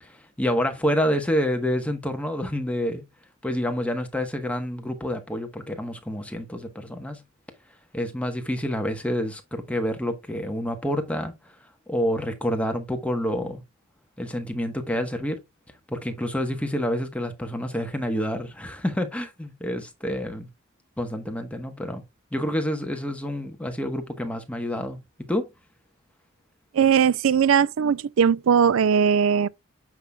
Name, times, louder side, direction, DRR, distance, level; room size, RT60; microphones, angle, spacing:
voice 1, 0.0-3.0 3.4-7.2 7.9-11.3 11.9-13.6 14.2-15.4 15.9-20.5 21.0-22.0 22.3-25.5, equal, 5° left, 1.1 m, -28 dB
voice 2, 26.7-29.5, right 7 dB, 75° right, 0.4 m, -19 dB
9.1 x 5.8 x 2.3 m
head